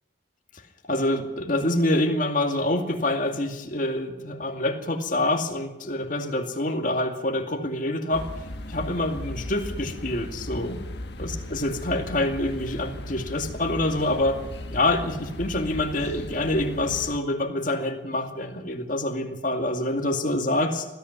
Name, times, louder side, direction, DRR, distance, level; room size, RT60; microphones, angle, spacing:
voice 1, 0.8-8.3 8.7-10.8 11.2-14.4 14.7-20.9, left 1 dB, 45° left, 4 dB, 2.4 m, -26 dB
sound 1, 8.1-17.2, left 1 dB, 60° left, 1.5 m, -37 dB
20.0 x 14.5 x 9.6 m, 1.0 s
head